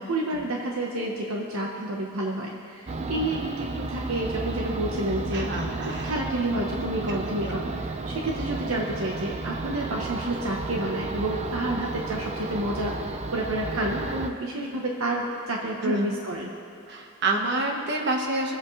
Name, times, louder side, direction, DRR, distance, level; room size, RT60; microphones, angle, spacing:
voice 1, 0.0-5.5 5.8-16.5, right 1 dB, 70° right, -1 dB, 1.0 m, -29 dB
sound 1, 2.9-14.3, right 3 dB, 30° right, 0.5 m, -33 dB
voice 2, 5.3-6.1 7.4-7.5 15.8-16.1 16.9-18.6, right 2 dB, 55° right, 1 dB, 1.3 m, -28 dB
23.5 x 8.0 x 3.2 m, 2.5 s
head